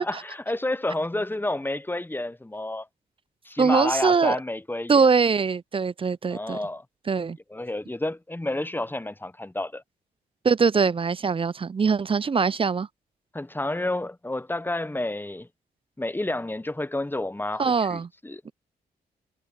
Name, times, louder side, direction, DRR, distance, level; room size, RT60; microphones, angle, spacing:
voice 1, 0.0-2.9 3.4-5.1 6.3-6.8 7.5-9.8 13.3-15.5 16.0-18.5, left 1 dB, 10° left, 1.0 m, -30 dB
voice 2, 3.6-4.4 4.9-6.6 7.1-7.4 10.4-12.9 17.6-18.1 18.5-18.6, right 5 dB, 30° right, 0.5 m, -22 dB
supercardioid pair, 45°, 18 cm